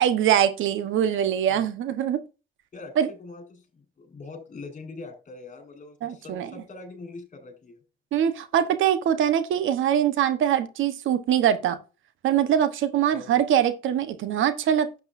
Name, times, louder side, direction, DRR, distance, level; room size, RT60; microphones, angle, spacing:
voice 1, 0.0-2.2 3.0-3.1 6.0-6.5 8.1-11.8 12.2-15.0, right 9 dB, 80° right, 1.2 m, -23 dB
voice 2, 2.7-7.8 13.1-13.4, left 3 dB, 40° left, 4.7 m, -43 dB
12.0 x 8.1 x 2.7 m
cardioid pair, 90°, 20 cm